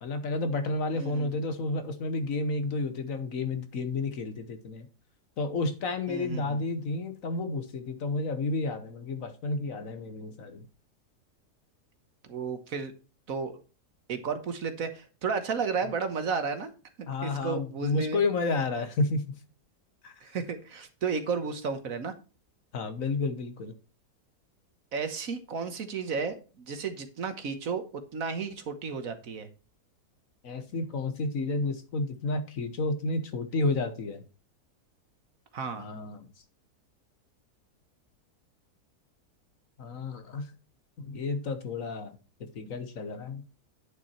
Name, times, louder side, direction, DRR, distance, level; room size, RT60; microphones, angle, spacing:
voice 1, 0.0-4.9 5.4-10.6 17.1-19.2 20.0-20.1 22.7-23.7 30.4-34.2 35.7-36.3 39.8-40.5 41.0-43.4, left 3 dB, 60° left, 1.4 m, -31 dB
voice 2, 0.9-1.4 6.1-6.6 12.3-12.9 13.3-13.6 14.1-16.7 17.0-18.2 20.2-22.1 24.9-29.5 35.5-35.8, right 5 dB, 60° right, 1.5 m, -33 dB
9.8 x 5.9 x 4.3 m
omnidirectional pair, 1.7 m